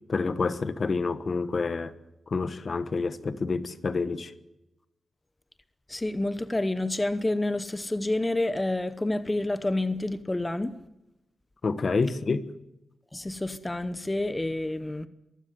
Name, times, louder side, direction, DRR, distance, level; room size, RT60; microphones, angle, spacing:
voice 1, 0.1-1.9 2.3-4.3 11.6-12.5, left 4 dB, 45° left, 1.2 m, -28 dB
voice 2, 5.9-10.7 13.1-15.1, left 2 dB, 15° left, 1.0 m, -28 dB
23.0 x 15.5 x 9.4 m
wide cardioid pair, 125°, 0 cm